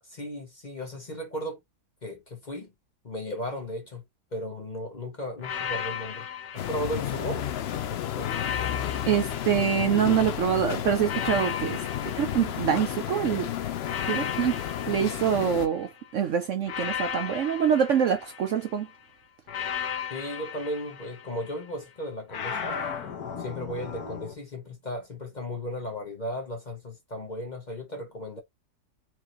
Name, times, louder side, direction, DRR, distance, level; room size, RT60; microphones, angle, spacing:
voice 1, 0.0-1.6 2.0-2.7 3.0-4.0 4.3-6.3 6.5-7.5 7.9-8.3 20.1-22.8 23.4-28.4, equal, 35° left, 0.9 m, -35 dB
sound 1, 5.4-7.6 8.2-10.4 11.0-13.2 13.8-16.0 16.6-18.8 19.5-21.6 22.3-24.3, left 7 dB, 70° left, 1.5 m, -36 dB
sound 2, 6.6-15.7, left 10 dB, 85° left, 0.5 m, -32 dB
voice 2, 9.1-11.8 12.2-13.5 14.0-18.9, right 8 dB, 65° right, 0.8 m, -25 dB
4.7 x 2.7 x 3.0 m
omnidirectional pair, 1.7 m